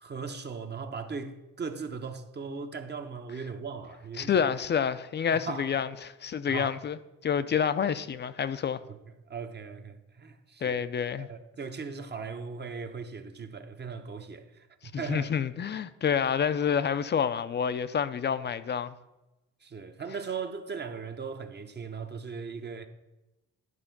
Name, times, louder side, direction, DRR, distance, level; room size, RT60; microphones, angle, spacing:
voice 1, 0.0-4.5 5.3-5.8 6.5-6.8 8.9-9.0 9.3-10.8 11.2-15.3 19.6-22.9, right 5 dB, 35° right, 0.8 m, -38 dB
voice 2, 4.2-7.0 7.2-8.8 10.6-11.3 14.9-18.9, left 7 dB, 35° left, 0.5 m, -28 dB
11.0 x 4.4 x 5.8 m
cardioid pair, 90°, 30 cm